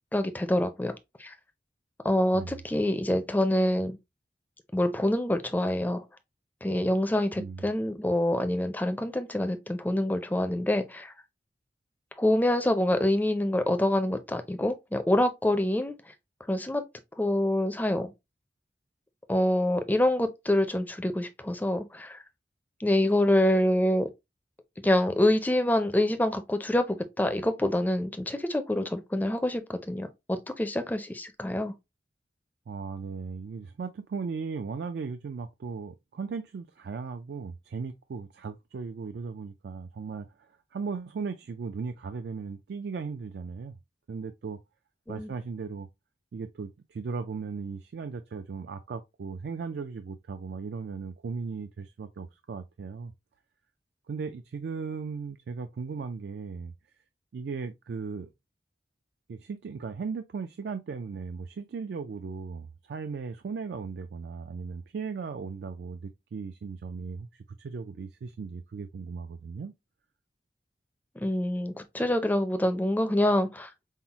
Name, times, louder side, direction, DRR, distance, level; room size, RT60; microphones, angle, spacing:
voice 1, 0.1-0.9 1.2-1.3 2.0-4.0 4.7-6.0 6.6-11.1 12.2-15.9 16.5-16.8 17.2-18.1 19.3-22.2 22.8-24.1 24.8-31.7 45.1-45.3 71.2-73.7, left 1 dB, 10° left, 0.4 m, -26 dB
voice 2, 32.7-40.3 40.7-43.7 44.1-44.6 45.1-45.9 46.3-53.1 54.1-56.7 57.3-58.3 59.3-69.7, right 5 dB, 65° right, 0.3 m, -37 dB
5.5 x 2.0 x 2.9 m
head